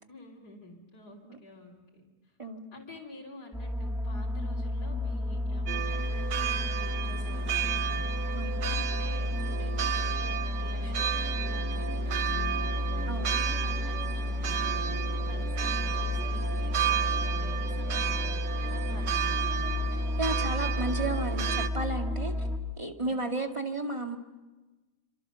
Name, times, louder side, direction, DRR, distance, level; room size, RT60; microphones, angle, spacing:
voice 1, 0.1-2.1 2.7-19.7 23.0-23.2, left 2 dB, 75° left, -3 dB, 3.9 m, -49 dB
sound 1, 3.5-22.6, left 1 dB, ahead, 2.8 m, -31 dB
sound 2, 5.7-21.7, right 10 dB, 80° right, 1.6 m, -33 dB
voice 2, 13.1-13.4 20.2-22.3 22.8-24.2, right 2 dB, 20° right, 4 dB, 2.0 m, -33 dB
28.5 x 26.0 x 6.9 m, 1.2 s
omnidirectional pair, 1.7 m